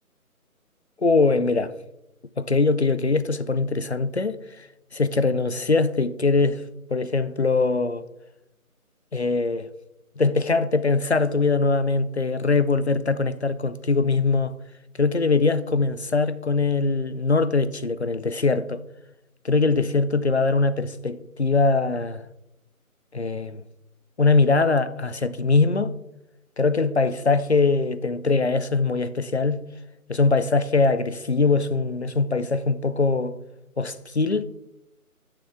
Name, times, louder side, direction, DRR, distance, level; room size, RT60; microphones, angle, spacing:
voice 1, 1.0-1.7 2.4-4.7 4.9-6.6 6.9-8.0 9.1-9.7 10.2-14.5 15.0-18.8 19.4-22.2 23.1-23.6 24.2-25.9 26.6-29.6 30.1-33.4 33.8-34.4, left 3 dB, 50° left, 0.4 m, -22 dB
9.4 x 6.5 x 3.6 m
figure-of-eight pair, 160°, 44 cm